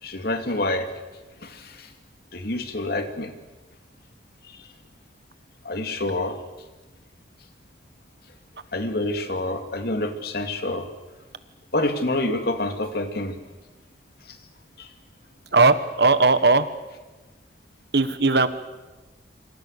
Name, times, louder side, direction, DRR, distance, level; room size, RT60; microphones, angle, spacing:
voice 1, 0.0-0.9 1.4-1.9 2.3-3.3 4.5-4.6 5.6-6.4 8.7-10.9 11.7-13.4 14.3-14.4 14.8-14.9, left 2 dB, 60° left, 6 dB, 2.8 m, -27 dB
voice 2, 15.5-16.7 17.9-18.5, right 3 dB, 65° right, 12 dB, 1.6 m, -18 dB
27.0 x 26.0 x 6.8 m, 1.2 s
head